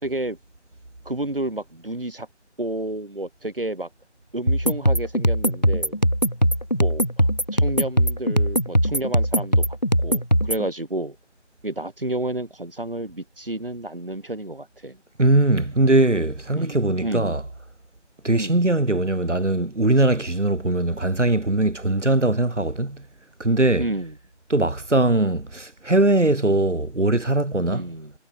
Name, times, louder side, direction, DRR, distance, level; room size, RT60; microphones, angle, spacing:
voice 1, 0.0-0.4 1.1-2.3 2.6-3.9 4.3-6.0 6.7-9.8 10.0-11.2 11.6-15.0 16.6-17.3 18.3-18.6 23.8-24.1 27.7-28.1, right 1 dB, 50° right, 4.2 m, -30 dB
sound 1, 4.5-10.7, equal, 35° left, 0.8 m, -20 dB
voice 2, 15.2-17.4 18.2-23.0 23.4-23.9 24.5-27.9, right 2 dB, 85° right, 2.0 m, -20 dB
figure-of-eight pair, 175°, 35 cm